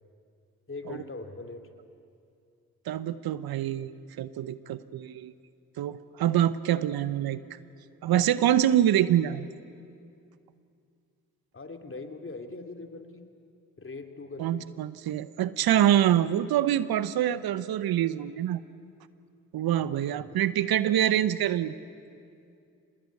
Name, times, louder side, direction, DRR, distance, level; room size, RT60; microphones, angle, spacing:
voice 1, 0.7-1.7 11.5-13.2 13.8-14.7 19.8-20.4, left 3 dB, 30° left, 6 dB, 2.8 m, -41 dB
voice 2, 2.9-3.9 4.2-5.3 5.8-7.4 8.0-9.5 14.4-18.6 19.5-21.7, right 11 dB, 65° right, 15 dB, 0.9 m, -25 dB
25.0 x 19.5 x 9.5 m, 2.4 s
hypercardioid pair, 45°, 39 cm